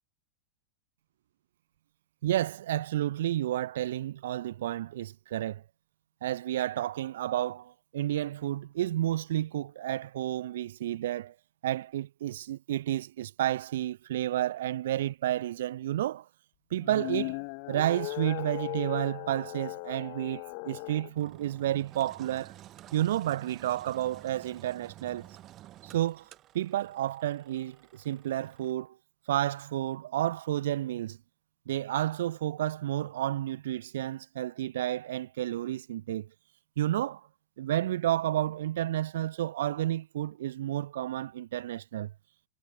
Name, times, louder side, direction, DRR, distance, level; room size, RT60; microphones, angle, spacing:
voice 1, 2.2-5.6 6.2-11.3 11.6-16.3 16.7-22.5 22.9-25.3 25.8-26.3 26.5-29.0 29.3-31.2 31.7-36.3 36.8-37.2 37.6-42.1, right 13 dB, 60° right, 0.4 m, -31 dB
sound 1, 16.7-21.1, left 40 dB or more, 45° left, 1.1 m, -37 dB
Engine, 21.1-28.7, right 13 dB, 35° right, 2.2 m, -51 dB
figure-of-eight pair, 90°, 0 cm